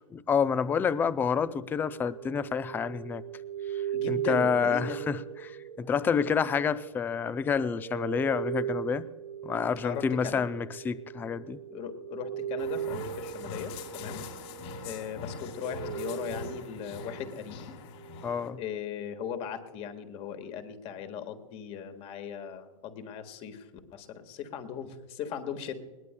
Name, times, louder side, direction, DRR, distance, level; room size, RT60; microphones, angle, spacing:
voice 1, 0.1-3.2 4.1-9.1 9.4-11.6 18.2-18.6, left 6 dB, 10° left, 0.4 m, -28 dB
sound 1, 1.2-17.5 17.9-18.7, right 10 dB, 85° right, 0.5 m, -39 dB
voice 2, 3.9-5.0 9.8-10.4 11.7-14.2 14.8-17.7 18.6-23.6 23.9-25.7, left 8 dB, 35° left, 1.6 m, -38 dB
sound 2, 12.6-18.5, left 5 dB, 55° left, 3.3 m, -43 dB
20.5 x 18.5 x 2.2 m
hypercardioid pair, 125°, 17 cm